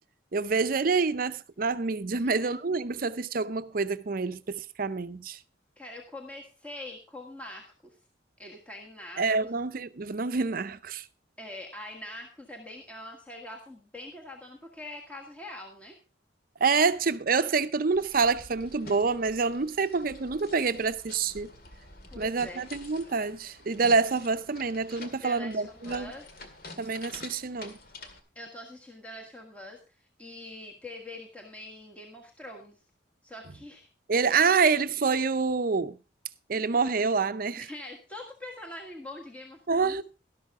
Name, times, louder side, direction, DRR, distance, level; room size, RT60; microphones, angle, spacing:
voice 1, 0.3-5.4 9.2-11.0 16.6-21.5 22.2-26.1 26.8-27.8 34.1-36.0 36.5-37.6 39.7-40.0, right 4 dB, 50° right, 0.6 m, -27 dB
voice 2, 2.2-2.5 5.8-8.0 8.4-9.5 11.4-16.0 22.1-22.6 25.2-26.2 28.3-32.8 33.2-34.4 37.6-40.0, left 1 dB, 10° left, 1.5 m, -44 dB
sound 1, 17.9-28.2, left 2 dB, 55° left, 1.9 m, -48 dB
12.5 x 12.0 x 3.6 m
head